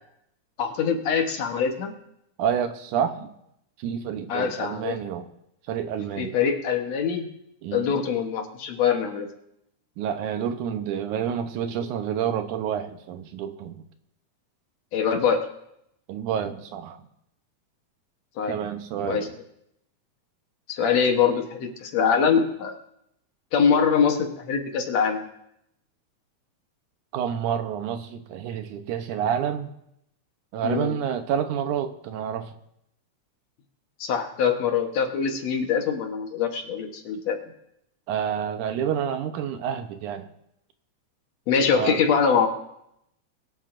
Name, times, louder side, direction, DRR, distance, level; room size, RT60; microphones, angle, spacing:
voice 1, 0.6-1.9 4.3-5.0 6.2-7.3 7.7-9.3 14.9-15.5 18.4-18.6 19.1-19.3 20.7-22.8 23.5-25.3 30.6-31.0 34.0-37.4 41.5-42.5, left 6 dB, 65° left, 4 dB, 2.1 m, -23 dB
voice 2, 2.4-3.3 3.8-5.3 5.7-6.3 7.6-8.0 10.0-13.8 16.1-17.1 18.5-19.4 27.1-29.7 30.5-32.6 38.1-40.3 41.7-42.0, right 8 dB, 80° right, 8 dB, 2.3 m, -29 dB
23.5 x 11.0 x 2.5 m, 0.79 s
omnidirectional pair, 3.5 m